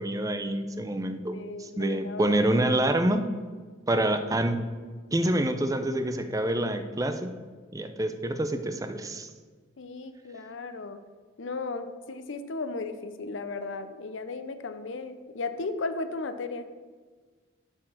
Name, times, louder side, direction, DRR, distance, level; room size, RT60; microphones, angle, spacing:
voice 1, 0.0-1.3 1.6-3.3 3.9-4.6 5.1-7.3 7.7-9.3, right 1 dB, 15° right, 8 dB, 0.5 m, -27 dB
voice 2, 1.3-2.4 9.8-11.0 11.4-16.7, left 3 dB, 80° left, 9 dB, 0.6 m, -35 dB
9.7 x 4.5 x 6.3 m, 1.5 s
head